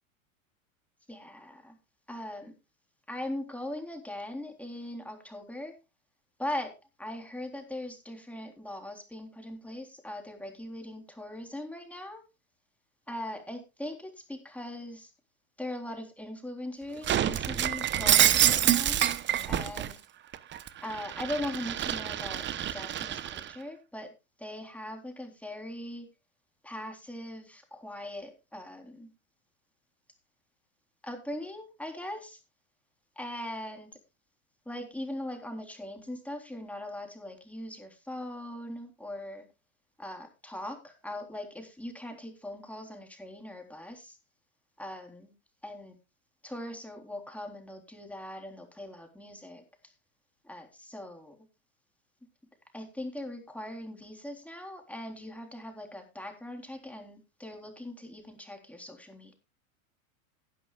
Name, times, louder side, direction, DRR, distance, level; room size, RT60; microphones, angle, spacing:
voice 1, 1.1-1.8 2.1-2.5 3.1-5.7 6.4-6.7 7.0-12.2 13.1-15.1 15.6-19.0 19.5-19.9 20.8-24.1 24.4-26.1 26.6-29.1 31.0-32.4 33.2-33.9 34.7-39.5 40.0-44.2 44.8-45.3 45.6-46.0 46.4-49.6 50.4-51.3 52.7-59.3, left 1 dB, 5° left, 3 dB, 3.7 m, -40 dB
Shatter, 17.0-19.9 20.3-23.5, right 11 dB, 25° right, 0.9 m, -27 dB
17.5 x 11.0 x 2.4 m, 0.27 s
hypercardioid pair, 105°, 41 cm